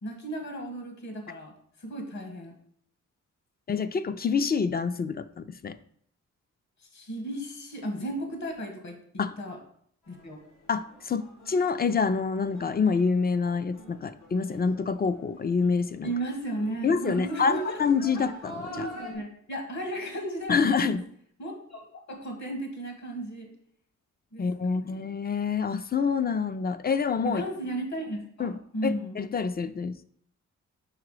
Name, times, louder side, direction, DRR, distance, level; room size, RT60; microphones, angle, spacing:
voice 1, 0.0-1.5 1.8-2.5 6.9-9.0 9.4-9.6 10.1-10.4 16.0-17.8 18.7-21.0 21.4-23.5 24.3-25.0 27.2-29.2, right 1 dB, 65° left, 3 dB, 1.7 m, -35 dB
voice 2, 3.7-5.8 9.2-9.4 10.7-16.1 16.8-18.9 20.5-21.0 24.4-27.4 28.4-28.6 28.8-30.0, left 5 dB, 30° left, 12 dB, 0.4 m, -27 dB
sound 1, 10.0-19.1, equal, 90° left, 2.4 m, -47 dB
4.8 x 3.9 x 4.9 m, 0.63 s
cardioid pair, 80°, 31 cm